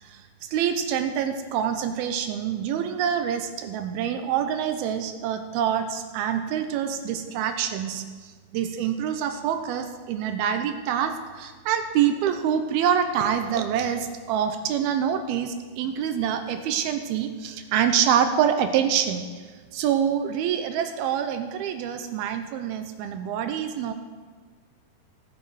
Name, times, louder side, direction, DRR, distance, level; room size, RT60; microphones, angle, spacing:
voice 1, 0.0-19.5 19.7-23.9, right 8 dB, 80° right, 7 dB, 2.5 m, -26 dB
18.5 x 7.0 x 4.8 m, 1.5 s
omnidirectional pair, 4.6 m